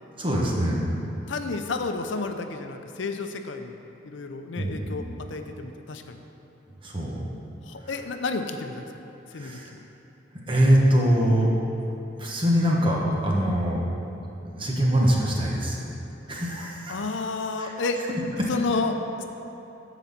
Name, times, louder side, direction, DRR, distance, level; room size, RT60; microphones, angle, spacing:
voice 1, 0.2-0.9 4.6-5.1 6.8-7.2 9.4-9.7 10.5-11.5 12.2-13.8 14.4-15.8 16.3-17.0 17.6-17.7 18.4-18.5, equal, 30° right, -3 dB, 1.3 m, -23 dB
voice 2, 1.3-6.2 7.6-8.9 9.3-9.6 16.9-18.0 18.5-19.2, left 3 dB, 80° left, 6 dB, 0.6 m, -31 dB
10.0 x 4.1 x 7.2 m, 3.0 s
head